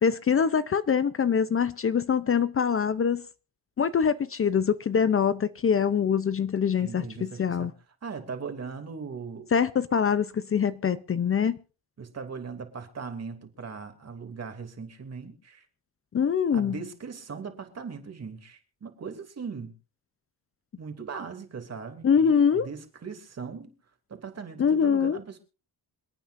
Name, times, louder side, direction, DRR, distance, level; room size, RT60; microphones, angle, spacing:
voice 1, 0.0-3.2 3.8-7.7 9.5-11.6 16.1-16.8 22.0-22.7 24.6-25.2, left 7 dB, 35° left, 0.7 m, -24 dB
voice 2, 6.8-7.7 8.0-9.5 12.0-15.7 16.5-19.7 20.8-23.7 24.1-25.4, right 5 dB, 45° right, 2.8 m, -39 dB
27.5 x 9.2 x 2.6 m
cardioid pair, 110°, 37 cm